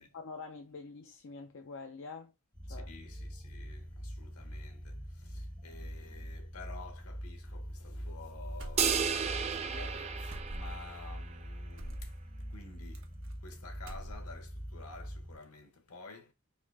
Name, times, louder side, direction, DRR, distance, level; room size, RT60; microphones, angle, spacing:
voice 1, 0.0-2.3 2.7-2.9, left 4 dB, 60° left, 0.6 m, -46 dB
sound 1, 2.5-15.4, equal, 20° left, 1.4 m, -43 dB
voice 2, 2.7-16.3, left 3 dB, 90° left, 1.3 m, -52 dB
sound 2, 8.6-9.3 9.5-9.7 10.3-10.9 11.8-12.1 12.9-13.5 13.8-14.5, right 1 dB, 60° right, 1.0 m, -45 dB
sound 3, 8.8-11.3, right 7 dB, 30° right, 0.4 m, -33 dB
4.0 x 2.6 x 4.8 m
head